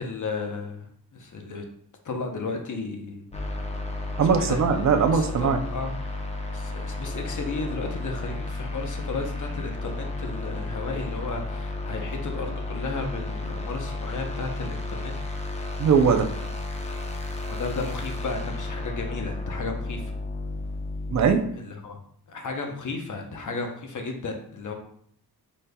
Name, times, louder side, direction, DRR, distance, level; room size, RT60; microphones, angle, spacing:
voice 1, 0.0-1.6 2.0-3.3 4.3-4.6 5.1-6.1 6.5-15.1 17.5-20.1 21.5-22.0 22.3-24.7, left 3 dB, 50° left, 3 dB, 0.8 m, -34 dB
sound 1, 3.3-21.3, left 2 dB, 15° left, 0.6 m, -33 dB
voice 2, 4.2-5.6 15.8-16.3 21.1-21.4, right 6 dB, 45° right, 5 dB, 0.5 m, -20 dB
5.0 x 4.2 x 2.2 m, 0.64 s
wide cardioid pair, 105°, 40 cm